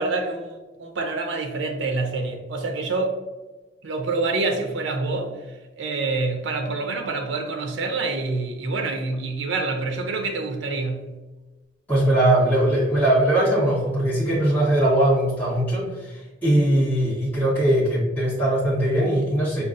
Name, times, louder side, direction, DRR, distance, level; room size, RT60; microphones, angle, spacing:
voice 1, 0.0-3.2 3.8-5.4 5.8-11.1, right 3 dB, 70° right, 3 dB, 0.5 m, -27 dB
voice 2, 11.9-19.7, right 1 dB, 10° left, -11 dB, 1.3 m, -20 dB
5.0 x 2.3 x 2.5 m, 1.2 s
head